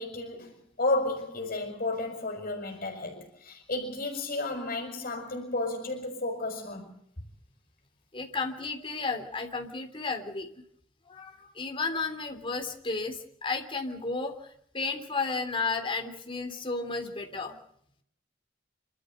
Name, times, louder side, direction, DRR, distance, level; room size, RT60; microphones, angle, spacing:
voice 1, 0.0-6.9, left 2 dB, 45° left, 5.8 m, -32 dB
voice 2, 8.1-10.5 11.1-14.4 14.7-17.5, left 4 dB, 25° left, 3.2 m, -33 dB
28.0 x 13.5 x 8.0 m
head